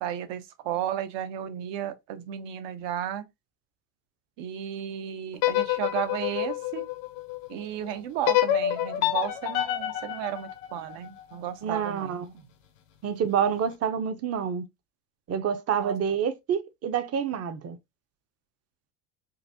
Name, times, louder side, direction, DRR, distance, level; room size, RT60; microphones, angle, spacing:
voice 1, 0.0-3.2 4.4-6.9 7.5-12.4 15.8-15.9, right 10 dB, 60° right, 0.8 m, -34 dB
sound 1, 5.3-7.5 8.3-11.4, left 13 dB, 80° left, 1.0 m, -28 dB
voice 2, 11.6-12.3 13.0-14.7 15.3-17.8, right 7 dB, 30° right, 0.6 m, -28 dB
3.9 x 2.5 x 2.6 m
supercardioid pair, 105°, 48 cm